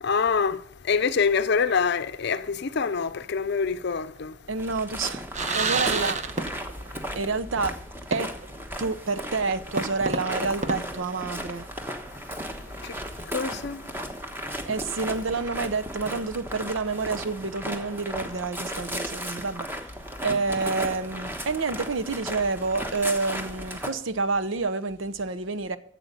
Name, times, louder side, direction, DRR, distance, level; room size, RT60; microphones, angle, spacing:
voice 1, 0.0-4.4 12.8-12.9 13.3-13.8, left 5 dB, 60° left, 0.6 m, -25 dB
voice 2, 4.5-5.3 5.5-6.2 7.2-7.8 8.1-8.3 8.8-11.7 14.6-19.7 20.2-25.8, right 4 dB, 85° right, 0.8 m, -28 dB
sound 1, 4.6-23.9, equal, 10° right, 1.2 m, -36 dB
sound 2, 5.3-6.9 7.2-7.3 8.1-8.6 9.0-9.1 9.8-11.7, right 3 dB, 40° right, 0.9 m, -30 dB
11.5 x 7.7 x 6.7 m
head